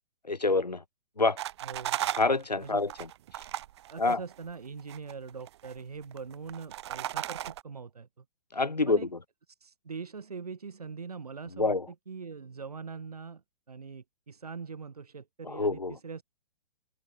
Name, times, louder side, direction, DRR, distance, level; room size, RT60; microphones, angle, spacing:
voice 1, 0.3-0.8 1.2-1.4 2.1-2.9 4.0-4.2 8.5-9.0 11.6-11.8 15.4-16.0, left 3 dB, 80° left, 1.5 m, -26 dB
sound 1, 1.4-4.5 4.8-5.7 6.0-7.6, right 13 dB, 40° right, 1.0 m, -36 dB
voice 2, 1.6-2.1 2.6-2.8 3.9-8.2 8.9-9.1 9.5-16.2, right 5 dB, 65° right, 5.7 m, -42 dB
open air
figure-of-eight pair, 115°, 21 cm